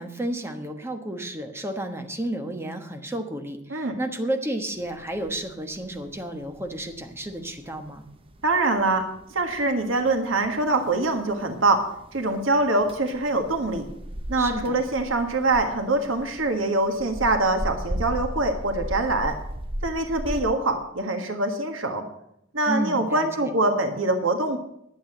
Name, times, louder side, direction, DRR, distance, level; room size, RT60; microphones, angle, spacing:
voice 1, 0.0-8.0 14.4-14.8 22.7-23.5, right 1 dB, 15° right, 5 dB, 1.2 m, -32 dB
sound 1, 4.7-20.4, equal, 30° right, 0.8 m, -37 dB
voice 2, 8.4-9.0 9.3-11.8 12.1-13.8 14.3-19.4 19.8-22.0 22.5-24.6, right 2 dB, 90° right, 5 dB, 1.6 m, -24 dB
11.0 x 8.0 x 7.7 m, 0.75 s
head